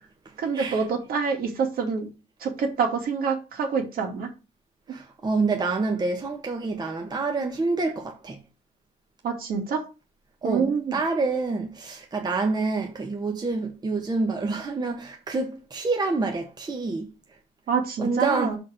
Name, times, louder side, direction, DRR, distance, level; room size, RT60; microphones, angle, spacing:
voice 1, 0.4-2.1 2.4-4.3 9.2-9.8 10.4-11.0 17.7-18.6, right 5 dB, 60° right, 2.6 m, -26 dB
voice 2, 4.9-8.4 10.4-17.1 18.0-18.6, right 3 dB, 25° right, 1.4 m, -27 dB
5.9 x 5.3 x 6.5 m
cardioid pair, 110°, 17 cm